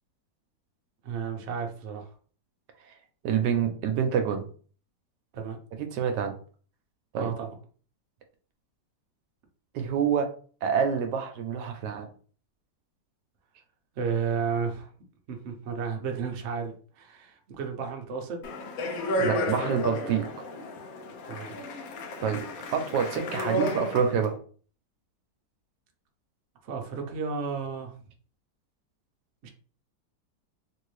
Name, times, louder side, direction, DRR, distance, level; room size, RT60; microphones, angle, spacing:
voice 1, 1.0-2.1 5.3-5.6 7.1-7.5 13.9-14.9 15.3-18.4 21.3-21.5 26.6-28.0 29.4-29.5, right 6 dB, 55° right, 3 dB, 0.8 m, -32 dB
voice 2, 3.2-4.4 5.8-6.3 7.1-7.3 9.7-10.3 10.6-12.1 19.2-20.3 22.2-22.5 22.7-24.3, right 7 dB, 80° right, 6 dB, 1.2 m, -27 dB
Speech, 18.4-24.3, left 1 dB, 65° left, 1.0 m, -32 dB
3.4 x 2.6 x 3.1 m, 0.43 s
omnidirectional pair, 1.9 m